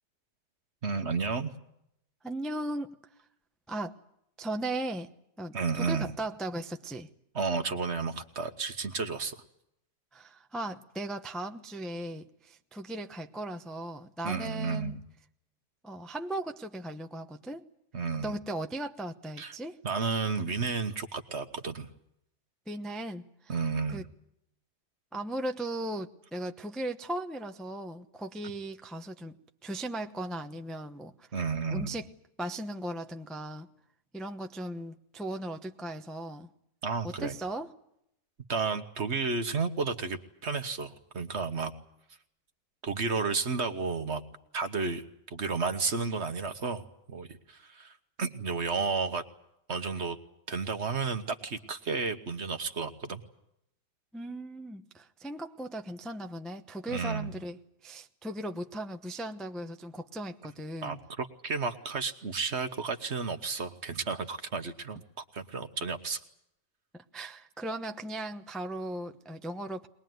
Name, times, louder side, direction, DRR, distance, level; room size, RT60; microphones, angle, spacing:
voice 1, 0.8-1.5 5.5-6.1 7.3-9.4 14.2-15.0 17.9-18.3 19.4-19.5 19.8-21.9 23.5-24.0 31.3-32.0 36.8-37.4 38.5-41.7 42.8-44.2 44.5-49.2 49.7-50.2 50.5-53.2 56.9-57.3 60.8-65.0 65.3-66.2, right 4 dB, 45° right, 8 dB, 1.4 m, -32 dB
voice 2, 2.2-2.9 3.7-4.0 4.4-5.1 5.4-7.1 10.1-15.0 15.8-17.7 18.2-19.8 22.7-23.5 23.9-24.0 25.1-29.4 29.6-31.3 31.7-32.1 32.4-33.7 34.1-36.5 37.0-37.7 54.1-61.0 66.9-69.9, right 1 dB, ahead, 4 dB, 0.6 m, -37 dB
22.0 x 21.0 x 9.3 m, 0.78 s
omnidirectional pair, 1.8 m